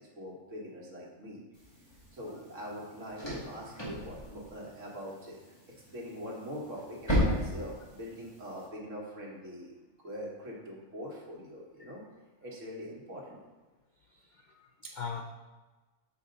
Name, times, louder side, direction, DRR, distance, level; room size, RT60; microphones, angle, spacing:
voice 1, 0.0-1.4 2.1-5.4 5.9-9.7 10.0-12.0 12.4-13.4, equal, 65° right, -3 dB, 1.8 m, -43 dB
sound 1, 1.5-8.7, equal, 20° left, 2.1 m, -36 dB
voice 2, 14.2-15.2, left 5 dB, 70° left, 2 dB, 0.4 m, -40 dB
6.5 x 5.8 x 3.9 m, 1.2 s
omnidirectional pair, 1.4 m